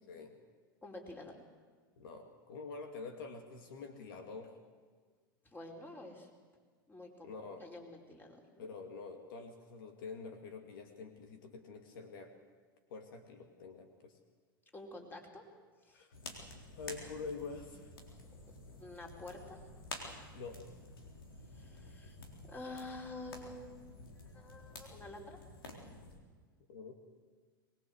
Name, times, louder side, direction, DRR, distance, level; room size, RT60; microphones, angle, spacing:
voice 1, 0.8-1.4 5.4-6.3 6.9-8.7 14.7-15.5 15.8-16.0 18.8-19.6 21.5-22.2 22.5-23.7 24.2-25.4, left 2 dB, 15° left, 1 dB, 4.9 m, -49 dB
voice 2, 2.0-4.5 7.2-7.6 8.6-12.3 12.9-14.1 15.9-16.1 16.8-17.9 20.3-20.6 26.7-26.9, left 4 dB, 70° left, 6 dB, 2.5 m, -46 dB
sound 1, 16.1-26.2, left 2 dB, 85° left, 3.9 m, -50 dB
23.0 x 21.0 x 8.0 m, 1.5 s
hypercardioid pair, 100°, 12 cm